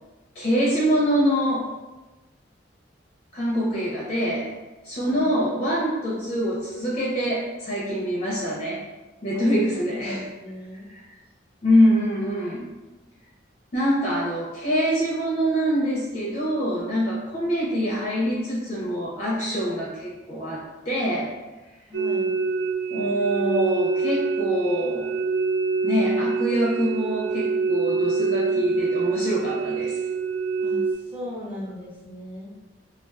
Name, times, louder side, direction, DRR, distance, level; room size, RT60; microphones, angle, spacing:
voice 1, 0.4-1.7 3.3-4.5 4.8-8.8 9.2-10.3 11.6-12.6 13.7-21.4 22.9-25.1 25.8-30.0, equal, 35° left, -5 dB, 0.4 m, -24 dB
voice 2, 9.3-10.9 21.9-22.4 30.6-32.5, left 1 dB, 10° right, -7 dB, 0.6 m, -38 dB
sound 1, 21.9-30.9, right 4 dB, 55° right, 0.3 m, -25 dB
2.3 x 2.2 x 3.4 m, 1.1 s
head